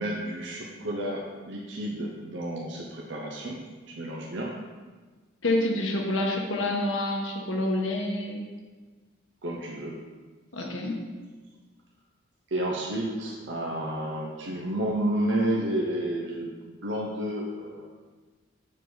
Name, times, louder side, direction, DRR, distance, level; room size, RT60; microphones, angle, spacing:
voice 1, 0.0-4.6 9.4-10.0 10.6-10.7 12.5-17.9, right 1 dB, 65° right, -2 dB, 0.8 m, -31 dB
voice 2, 5.4-8.4 10.5-11.0, left 1 dB, 80° left, 0 dB, 1.4 m, -27 dB
7.2 x 6.7 x 4.0 m, 1.4 s
head